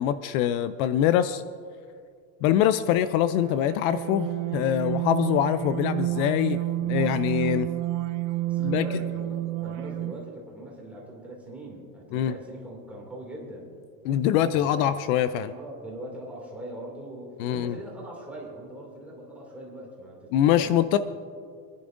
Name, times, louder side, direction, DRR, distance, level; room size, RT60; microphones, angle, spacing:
voice 1, 0.0-1.4 2.4-7.7 8.6-9.0 12.1-12.3 14.0-15.5 17.4-17.8 20.3-21.0, left 11 dB, 65° left, 13 dB, 0.5 m, -24 dB
sound 1, 3.5-10.3, right 14 dB, 55° right, 0.7 m, -30 dB
voice 2, 8.4-13.7 14.3-14.8 15.5-20.7, right 1 dB, 5° right, -4 dB, 2.4 m, -41 dB
27.0 x 10.5 x 2.6 m, 2.2 s
cardioid pair, 170°, 46 cm